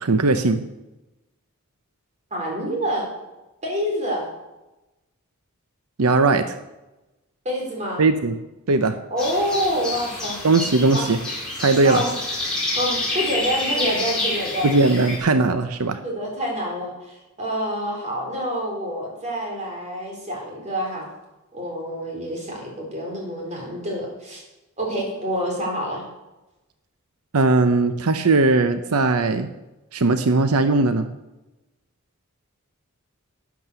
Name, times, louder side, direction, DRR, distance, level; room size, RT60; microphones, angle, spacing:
voice 1, 0.0-0.6 6.0-6.5 8.0-8.4 8.7-9.0 10.4-11.2 11.6-12.0 14.6-16.0 27.3-29.5 29.9-31.1, right 3 dB, 90° right, 10 dB, 0.8 m, -19 dB
voice 2, 2.3-3.1 3.6-4.3 7.4-8.0 9.1-10.4 10.9-11.1 11.8-12.1 12.8-14.7 16.0-21.0 21.5-24.4 24.8-26.0, equal, 30° right, -1 dB, 4.1 m, -27 dB
sound 1, 9.2-15.2, left 2 dB, 5° left, 4.7 m, -28 dB
12.0 x 9.3 x 6.9 m, 1.0 s
head